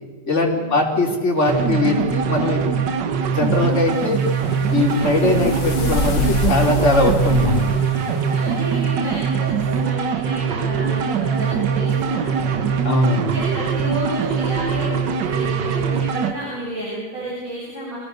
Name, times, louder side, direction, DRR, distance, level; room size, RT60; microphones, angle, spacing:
voice 1, 0.2-2.6 3.2-4.2 4.7-7.6 12.8-13.3, left 2 dB, 40° left, 1 dB, 3.8 m, -20 dB
sound 1, 1.5-16.3, right 6 dB, 75° right, 1.8 m, -22 dB
sound 2, 3.5-8.8, left 5 dB, 80° left, 2.0 m, -28 dB
voice 2, 7.9-12.7 13.2-18.0, right 1 dB, 50° right, -7 dB, 8.1 m, -31 dB
27.0 x 18.0 x 6.6 m, 1.3 s
omnidirectional pair, 1.9 m